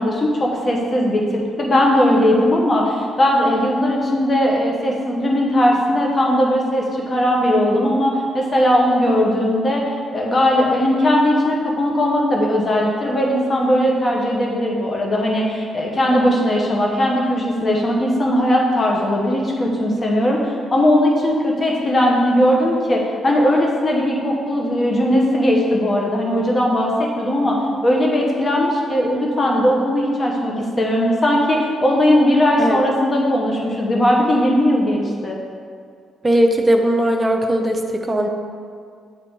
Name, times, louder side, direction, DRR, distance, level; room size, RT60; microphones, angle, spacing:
voice 1, 0.0-9.8 10.1-35.4, left 1 dB, 30° left, -1 dB, 1.1 m, -18 dB
voice 2, 36.2-38.3, right 1 dB, 15° right, 4 dB, 0.6 m, -18 dB
8.6 x 3.7 x 3.7 m, 2.1 s
cardioid pair, 105°, 0 cm